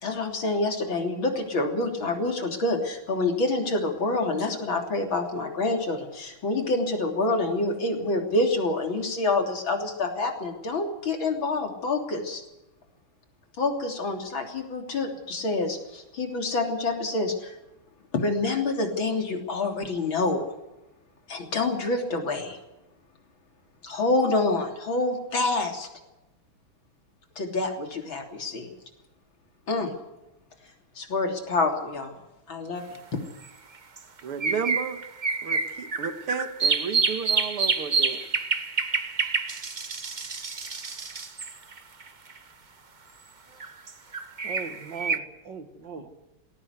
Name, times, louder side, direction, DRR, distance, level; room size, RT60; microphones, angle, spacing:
voice 1, 0.0-12.4 13.6-17.5 18.1-20.5 21.3-22.6 23.8-25.9 27.4-28.7 29.7-29.9 31.0-32.1 32.5-32.8, left 2 dB, 65° left, 3 dB, 4.0 m, -27 dB
sound 1, 32.9-33.0 34.0-42.4 43.6-45.2, right 4 dB, 30° right, 0.9 m, -28 dB
voice 2, 34.2-35.0 35.4-38.3, right 6 dB, 85° right, 9 dB, 2.4 m, -33 dB
voice 3, 44.4-46.3, right 5 dB, 55° right, 7 dB, 2.5 m, -39 dB
19.5 x 17.5 x 8.1 m, 0.99 s
omnidirectional pair, 2.4 m